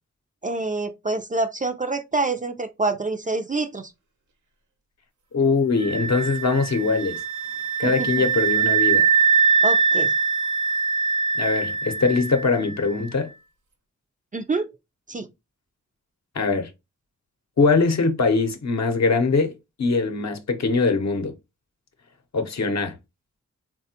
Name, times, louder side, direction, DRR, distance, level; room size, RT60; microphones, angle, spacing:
voice 1, 0.4-3.9 7.8-8.1 9.6-10.1 14.3-14.7 15.1-15.3, right 3 dB, 25° right, 0.4 m, -26 dB
voice 2, 5.3-7.2 7.8-9.1 11.4-13.3 16.4-16.7 17.6-21.3 22.3-23.0, left 4 dB, 55° left, 0.7 m, -22 dB
sound 1, 5.8-12.6, right 6 dB, 65° right, 0.7 m, -22 dB
3.3 x 2.2 x 2.8 m
cardioid pair, 40°, 32 cm